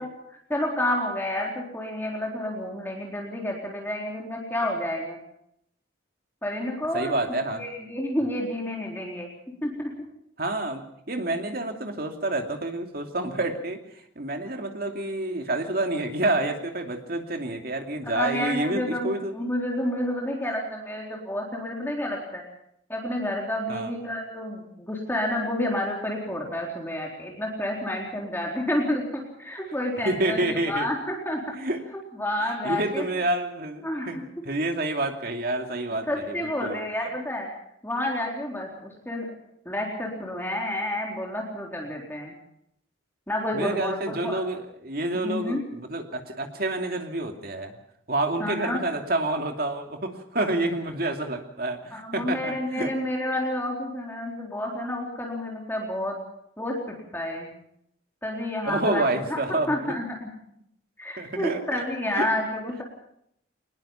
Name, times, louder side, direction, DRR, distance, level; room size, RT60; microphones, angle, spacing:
voice 1, 0.5-5.2 6.4-7.1 7.6-9.3 9.6-9.9 18.0-22.4 22.9-31.4 32.2-33.1 33.8-34.2 36.1-37.5 37.8-39.3 39.7-42.3 43.3-44.5 45.1-45.6 48.4-48.8 51.9-56.2 56.6-57.5 58.2-59.0 59.3-60.3 61.0-62.8, left 1 dB, 10° left, -1 dB, 3.9 m, -30 dB
voice 2, 6.9-7.6 10.4-13.8 14.2-19.3 23.7-23.9 30.0-30.9 31.5-31.8 32.6-34.2 34.4-36.8 43.5-47.7 48.1-52.9 58.6-59.9 61.2-61.8 62.1-62.3, right 2 dB, 50° right, 4 dB, 2.7 m, -28 dB
23.0 x 20.5 x 5.8 m, 0.73 s
head